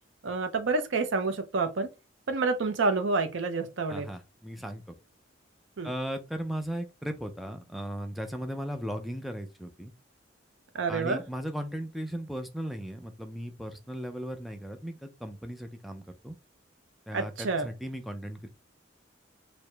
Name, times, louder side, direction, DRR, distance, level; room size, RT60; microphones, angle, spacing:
voice 1, 0.2-1.9 2.3-4.1 5.8-5.9 10.7-11.2 17.1-17.7, right 3 dB, 80° right, 0.5 m, -28 dB
voice 2, 3.9-4.9 5.8-9.9 10.9-16.3 17.1-18.5, equal, ahead, 0.4 m, -37 dB
4.7 x 2.0 x 3.2 m
head